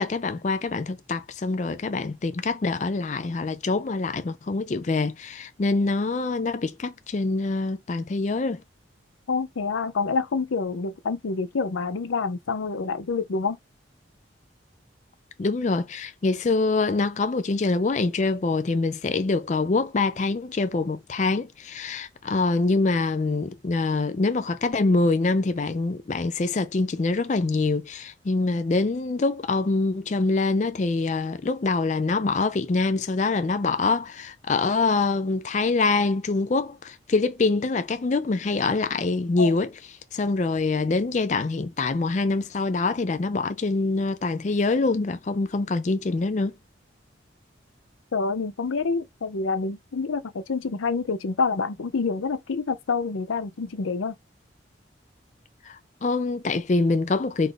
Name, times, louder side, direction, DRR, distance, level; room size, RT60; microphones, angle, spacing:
voice 1, 0.0-8.6 15.4-39.7 40.1-46.5 55.7-57.5, left 3 dB, 35° left, 0.4 m, -25 dB
voice 2, 9.3-13.6 39.4-39.5 48.1-54.1, left 4 dB, 90° left, 0.6 m, -27 dB
4.0 x 2.6 x 4.8 m
head